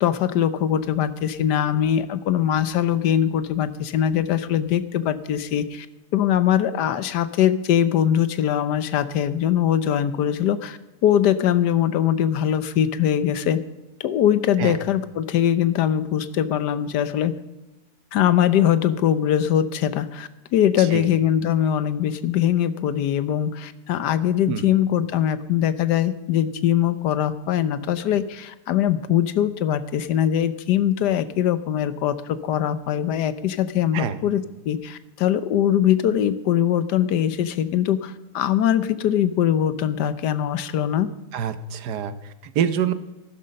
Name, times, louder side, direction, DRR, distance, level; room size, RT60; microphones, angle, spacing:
voice 1, 0.0-5.9 6.1-13.6 14.0-17.3 18.1-41.1, left 10 dB, 90° left, 13 dB, 1.4 m, -22 dB
voice 2, 20.8-21.1 24.5-24.7 33.9-34.2 41.3-42.9, right 8 dB, 80° right, 12 dB, 1.4 m, -26 dB
15.0 x 12.5 x 5.4 m, 1.0 s
omnidirectional pair, 1.7 m